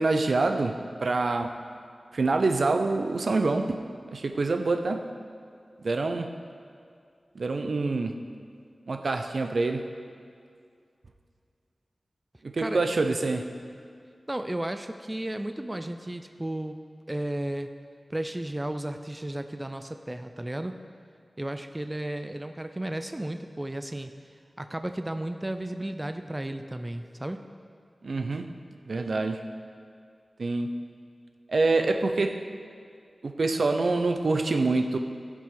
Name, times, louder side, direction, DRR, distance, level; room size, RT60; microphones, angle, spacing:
voice 1, 0.0-1.6 2.1-3.8 4.1-5.1 5.8-6.3 7.3-8.2 8.9-9.9 12.4-13.5 28.0-28.5 28.9-29.4 30.4-30.8 31.5-32.5 33.2-35.0, right 3 dB, 65° right, 6 dB, 0.6 m, -26 dB
voice 2, 14.3-16.8 17.1-17.7 18.1-20.8 21.4-24.1 24.6-27.5, right 1 dB, 20° right, 8 dB, 0.3 m, -33 dB
15.0 x 5.9 x 3.8 m, 2.3 s
wide cardioid pair, 95°, 0 cm